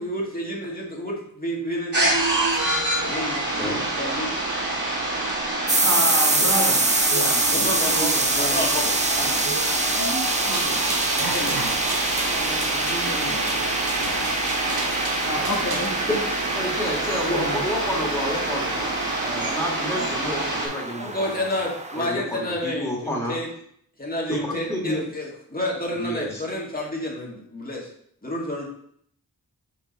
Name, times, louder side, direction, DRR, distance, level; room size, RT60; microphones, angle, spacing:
voice 1, 0.0-2.1 3.0-4.3 7.5-8.9 21.0-23.5 24.0-27.9 28.2-28.7, left 1 dB, 25° left, -3 dB, 1.9 m, -30 dB
sound 1, 1.9-20.7, right 2 dB, 50° right, 2.3 m, -27 dB
sound 2, 5.7-22.0, right 2 dB, 20° right, 0.6 m, -26 dB
voice 2, 5.8-8.6 9.1-9.5 10.5-10.8 11.3-11.8 12.3-13.6 14.0-14.2 15.2-16.0 17.3-17.6, left 1 dB, 60° left, -2 dB, 1.2 m, -31 dB
voice 3, 8.5-8.8 16.5-21.4 21.9-23.4 24.3-25.1 25.9-26.4, equal, 5° left, -4 dB, 2.1 m, -30 dB
sound 3, 10.4-15.9, right 3 dB, 75° right, 1.0 m, -34 dB
5.2 x 4.8 x 4.1 m, 0.66 s
wide cardioid pair, 60°, 37 cm